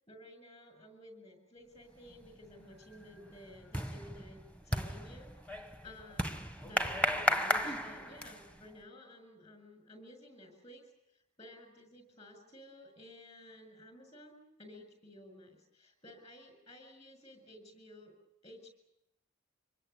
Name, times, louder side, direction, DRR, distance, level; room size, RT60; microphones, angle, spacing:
voice 1, 0.1-18.1 18.4-18.7, left 1 dB, 30° left, 7 dB, 7.6 m, -54 dB
sound 1, 2.1-2.5 2.8-8.6, left 1 dB, 5° left, 1.0 m, -35 dB
26.0 x 24.0 x 7.2 m, 0.84 s
head